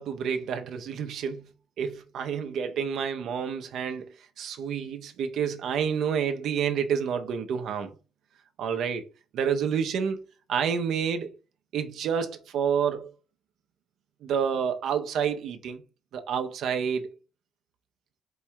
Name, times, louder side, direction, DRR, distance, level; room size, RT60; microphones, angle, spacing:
voice 1, 0.0-1.5 1.8-7.9 8.6-9.0 9.3-11.3 11.7-13.1 14.2-15.8 16.1-17.2, right 7 dB, 75° right, 0.5 m, -29 dB
4.6 x 2.2 x 4.4 m
cardioid pair, 90°, 0 cm